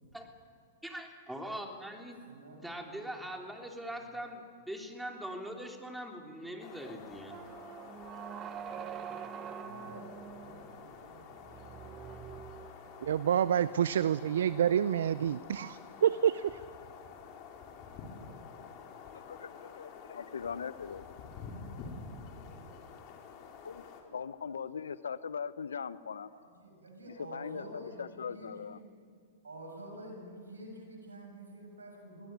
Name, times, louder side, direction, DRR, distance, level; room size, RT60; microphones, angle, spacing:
voice 1, 0.8-2.2 2.6-7.4, right 1 dB, 5° right, 2 dB, 3.2 m, -42 dB
voice 2, 2.2-3.1 9.6-11.9 26.3-28.9 29.4-32.3, right 1 dB, 90° right, 1 dB, 7.7 m, -49 dB
sound 1, 6.6-24.0, left 5 dB, 45° left, 4.2 m, -49 dB
sound 2, 7.3-13.3, right 9 dB, 30° right, 1.0 m, -45 dB
voice 3, 13.0-16.6, right 9 dB, 75° right, 17 dB, 0.5 m, -28 dB
voice 4, 19.1-21.1 23.6-26.3 27.2-28.8, left 6 dB, 80° left, 16 dB, 0.9 m, -40 dB
23.0 x 17.5 x 9.6 m, 2.2 s
hypercardioid pair, 110°, 0 cm